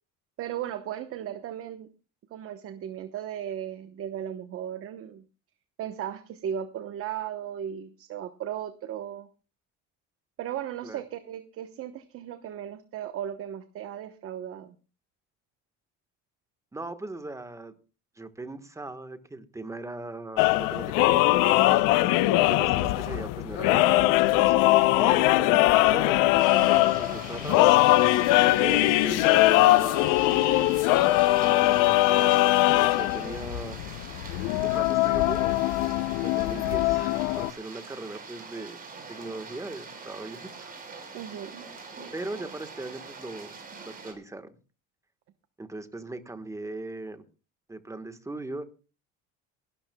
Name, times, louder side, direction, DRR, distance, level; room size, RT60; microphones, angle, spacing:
voice 1, 0.4-1.9 2.3-5.2 5.8-9.3 10.4-14.7 22.4-22.7 36.9-37.0 41.1-41.7, right 10 dB, 50° right, 10 dB, 1.0 m, -36 dB
voice 2, 16.7-17.8 18.1-21.7 22.5-27.7 28.6-30.8 31.4-33.8 34.6-35.9 36.2-38.8 39.1-40.7 42.1-43.5 43.8-44.5 45.6-47.2 47.7-48.6, right 2 dB, 10° right, 9 dB, 1.3 m, -39 dB
sound 1, 20.4-37.5, left 17 dB, 90° left, 0.7 m, -21 dB
sound 2, 26.4-44.1, right 4 dB, 30° right, 4.6 m, -44 dB
27.0 x 12.5 x 2.3 m, 0.33 s
cardioid pair, 135°, 30 cm